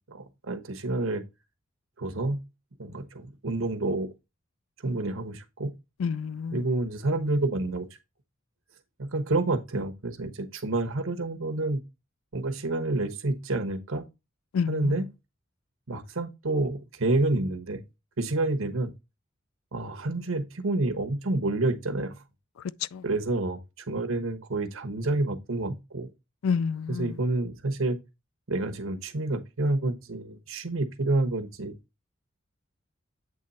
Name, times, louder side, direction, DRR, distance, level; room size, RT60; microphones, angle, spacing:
voice 1, 0.1-1.2 2.0-2.4 2.8-4.1 4.8-5.7 6.5-7.9 9.0-11.8 12.3-14.0 14.7-15.1 15.9-17.8 18.2-18.9 19.7-22.2 23.0-23.6 23.9-26.1 26.9-28.0 28.5-31.7, right 2 dB, 90° right, 1.1 m, -28 dB
voice 2, 6.0-6.6 14.5-14.9 22.9-23.0 26.4-27.1, left 6 dB, 90° left, 0.4 m, -28 dB
8.3 x 3.2 x 4.1 m
head